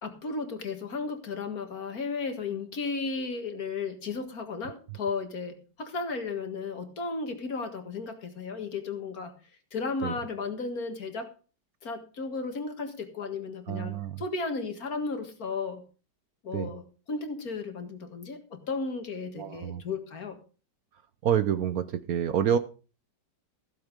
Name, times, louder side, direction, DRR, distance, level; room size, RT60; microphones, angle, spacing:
voice 1, 0.0-9.3 9.7-11.3 11.8-15.8 16.4-20.4, left 4 dB, 55° left, 7 dB, 2.2 m, -34 dB
voice 2, 13.7-14.2 16.5-16.7 19.4-19.8 21.2-22.6, right 9 dB, 65° right, 13 dB, 1.1 m, -28 dB
15.0 x 8.1 x 5.2 m, 0.36 s
omnidirectional pair, 1.9 m